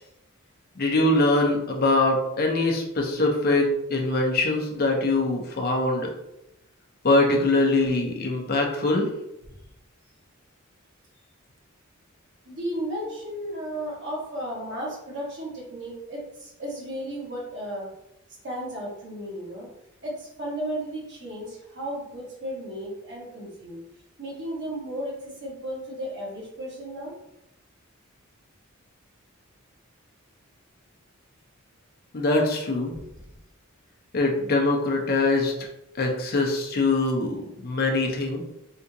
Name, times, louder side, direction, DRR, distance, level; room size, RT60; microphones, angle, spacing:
voice 1, 0.8-6.1 7.0-9.1 32.1-32.9 34.1-35.5 36.0-38.4, left 2 dB, 45° left, 1 dB, 0.6 m, -23 dB
voice 2, 12.4-17.9 18.4-19.7 20.0-23.8 24.2-27.1, equal, 55° right, -5 dB, 1.4 m, -34 dB
3.6 x 2.4 x 2.8 m, 0.87 s
head